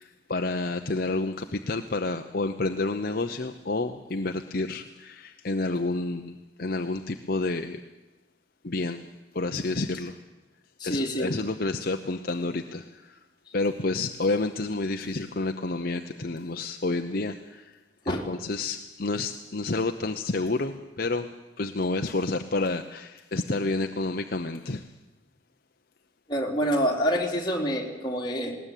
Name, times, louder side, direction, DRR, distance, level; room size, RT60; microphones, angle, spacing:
voice 1, 0.0-7.8 8.6-9.1 9.3-10.2 10.8-13.2 13.5-17.8 18.0-21.3 21.6-24.9, left 2 dB, 50° left, 6 dB, 0.8 m, -29 dB
voice 2, 10.8-11.3 18.0-18.3 26.3-28.6, equal, 25° left, 0 dB, 3.4 m, -27 dB
19.5 x 19.0 x 9.2 m, 1.1 s
head